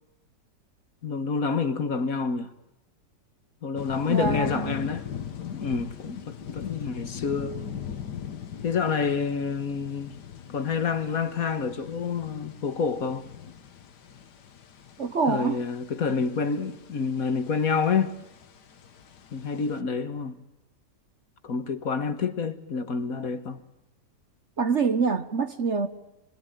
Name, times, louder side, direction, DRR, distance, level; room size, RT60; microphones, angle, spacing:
voice 1, 1.0-2.5 3.6-5.1 5.4-7.6 8.6-10.1 10.5-13.2 15.3-18.2 19.3-20.4 21.4-23.6, left 5 dB, 55° left, 1.9 m, -28 dB
sound 1, 3.8-19.8, left 8 dB, 75° left, 1.9 m, -40 dB
voice 2, 4.1-4.8 15.0-15.6 24.6-25.9, right 5 dB, 45° right, 1.3 m, -25 dB
27.5 x 21.5 x 9.2 m
omnidirectional pair, 1.8 m